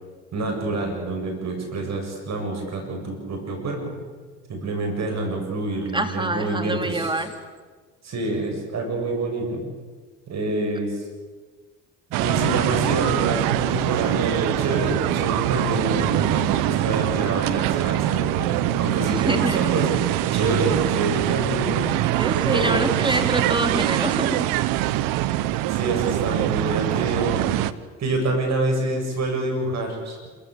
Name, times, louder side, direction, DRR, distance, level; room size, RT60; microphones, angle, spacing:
voice 1, 0.3-3.9 4.5-7.1 8.0-9.6 10.3-11.0 12.1-21.9 22.5-22.8 23.1-23.2 25.7-27.5 28.0-30.3, right 2 dB, 55° right, 3 dB, 7.7 m, -27 dB
voice 2, 5.9-7.3 19.1-19.6 22.2-24.5, right 2 dB, 15° right, 6 dB, 3.3 m, -25 dB
sound 1, 12.1-27.7, right 14 dB, 80° right, 0.9 m, -23 dB
27.0 x 15.5 x 8.5 m, 1.4 s
supercardioid pair, 65°, 33 cm